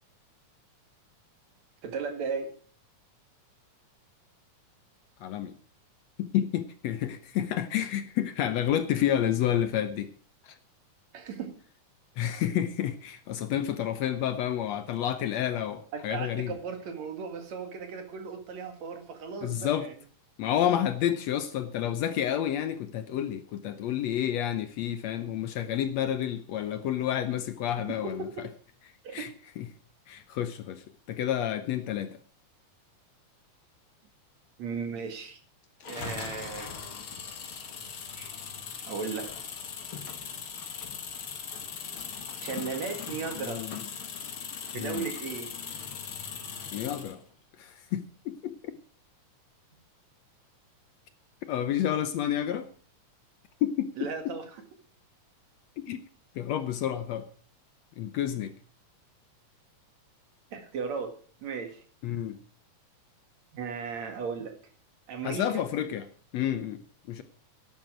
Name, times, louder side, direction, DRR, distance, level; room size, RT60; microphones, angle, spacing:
voice 1, 1.8-2.5 11.1-11.6 15.9-19.9 27.9-28.4 29.0-29.3 34.6-35.4 35.9-36.7 38.2-38.3 38.9-39.3 42.4-43.7 44.7-45.5 54.0-54.6 60.5-61.2 61.4-61.8 63.5-64.6 65.1-65.6, right 5 dB, 65° right, 3.0 m, -36 dB
voice 2, 5.2-5.5 6.2-10.1 12.2-16.5 19.4-19.9 20.4-28.3 29.1-29.3 29.6-29.7 30.1-30.8 31.1-32.1 43.4-43.8 44.7-45.1 46.7-47.2 47.6-48.6 51.5-52.7 53.6-54.3 55.8-56.0 56.4-57.3 58.0-58.5 62.0-62.4 65.2-66.0 66.3-66.8 67.1-67.2, left 10 dB, 70° left, 1.8 m, -30 dB
sound 1, 35.8-47.2, left 6 dB, 50° left, 2.1 m, -39 dB
12.0 x 10.5 x 6.2 m
omnidirectional pair, 3.6 m